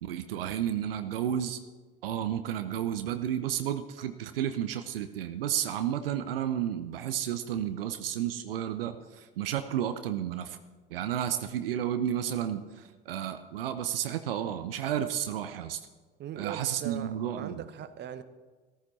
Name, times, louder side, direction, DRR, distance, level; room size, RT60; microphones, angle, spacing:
voice 1, 0.0-1.6 2.0-10.6 10.9-15.8 16.4-17.6, right 10 dB, 75° right, 10 dB, 0.8 m, -32 dB
voice 2, 16.2-18.2, right 10 dB, 35° right, 12 dB, 0.9 m, -39 dB
14.0 x 14.0 x 4.2 m, 1.4 s
figure-of-eight pair, 70°, 29 cm